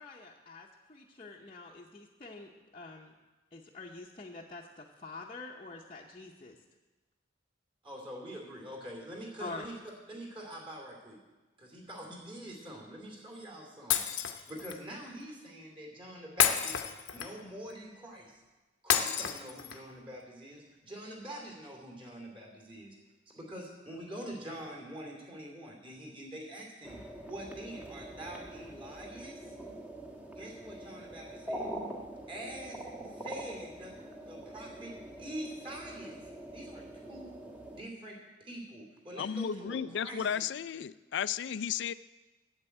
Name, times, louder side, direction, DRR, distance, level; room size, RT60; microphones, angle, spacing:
voice 1, 0.0-3.1 3.5-6.5 9.4-9.7, left 3 dB, 30° left, -3 dB, 0.7 m, -46 dB
voice 2, 7.8-9.7 10.1-11.2 11.6-14.0 14.5-16.8 17.1-18.4 18.8-22.9 23.3-29.6 30.3-31.7 32.3-33.9 34.3-34.9 35.2-36.2 36.5-37.4 37.7-40.3, right 1 dB, 25° right, 0 dB, 2.6 m, -45 dB
Shatter, 13.9-14.8 16.4-17.5 18.9-19.9, left 9 dB, 80° left, 0.8 m, -29 dB
sound 1, 26.8-37.8, right 1 dB, 10° right, 1.2 m, -44 dB
voice 3, 39.2-41.9, left 8 dB, 60° left, 16 dB, 0.3 m, -34 dB
8.1 x 8.0 x 8.8 m, 1.2 s
head